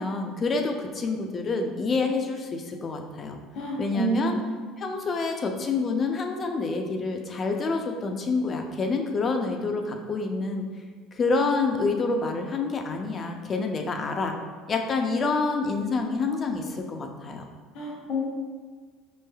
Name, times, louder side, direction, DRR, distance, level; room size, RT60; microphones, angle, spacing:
voice 1, 0.0-3.4 3.8-4.4 4.8-10.7 11.1-14.4 14.7-17.4, left 3 dB, 35° left, 4 dB, 0.4 m, -27 dB
voice 2, 3.5-4.4 17.7-18.3, right 2 dB, 65° left, -3 dB, 1.1 m, -28 dB
5.1 x 3.2 x 2.3 m, 1.5 s
supercardioid pair, 115°, 0 cm